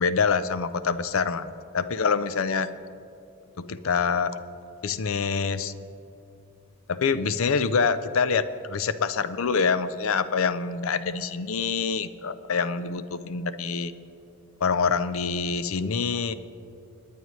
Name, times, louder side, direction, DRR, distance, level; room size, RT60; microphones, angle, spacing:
voice 1, 0.0-1.5 1.7-2.7 3.6-4.3 4.8-5.7 6.9-13.9 14.6-16.3, left 5 dB, 70° left, 13 dB, 0.5 m, -25 dB
19.5 x 9.6 x 3.2 m, 2.7 s
head